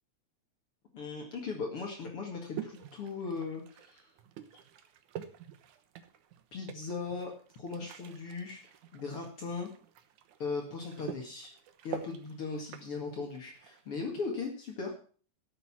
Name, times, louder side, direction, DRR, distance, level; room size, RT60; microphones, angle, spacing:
voice 1, 0.9-4.1 6.5-8.6 8.9-9.7 10.4-11.5 11.8-14.9, left 4 dB, 50° left, 1 dB, 2.8 m, -38 dB
sound 1, 2.6-14.3, right 9 dB, 85° right, 2.6 m, -48 dB
13.0 x 8.2 x 6.1 m, 0.42 s
omnidirectional pair, 3.3 m